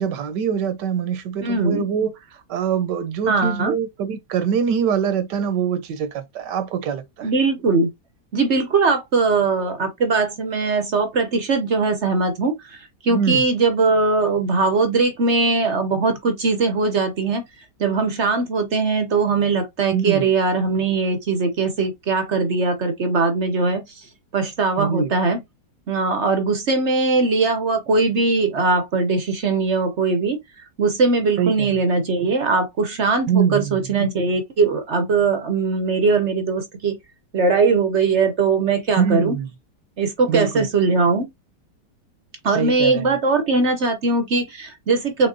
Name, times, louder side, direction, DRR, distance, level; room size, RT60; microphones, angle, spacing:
voice 1, 0.0-2.1 2.5-7.3 13.1-13.4 19.9-20.3 24.8-25.1 31.4-31.7 33.3-34.0 39.0-39.5 40.3-40.7 42.5-43.2, right 7 dB, 80° right, 1.4 m, -23 dB
voice 2, 1.4-1.8 3.3-3.7 7.2-7.9 8.3-12.8 13.0-17.4 17.8-23.8 24.3-25.4 25.9-30.4 30.8-37.0 37.3-39.4 40.0-41.3 42.4-45.3, right 4 dB, 50° right, 0.9 m, -20 dB
5.3 x 3.6 x 2.6 m
omnidirectional pair, 1.8 m